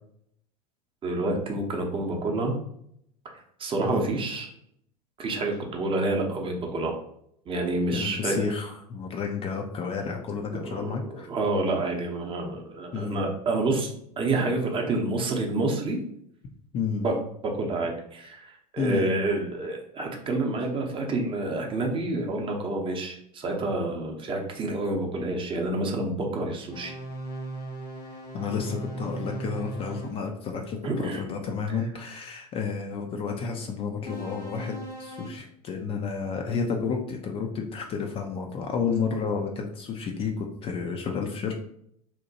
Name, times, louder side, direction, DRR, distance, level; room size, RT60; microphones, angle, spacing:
voice 1, 1.0-2.5 3.6-4.5 5.2-6.9 7.5-8.4 10.7-16.0 17.0-17.1 17.5-27.0 30.8-31.2, right 2 dB, 25° right, 1 dB, 0.7 m, -28 dB
voice 2, 7.9-11.3 12.9-13.2 16.7-17.1 18.8-19.1 28.3-41.6, left 5 dB, 30° left, 3 dB, 0.4 m, -31 dB
sound 1, 26.7-30.2 34.0-35.3, right 2 dB, 85° left, 0.7 m, -38 dB
2.8 x 2.1 x 2.7 m, 0.69 s
hypercardioid pair, 85°, 20 cm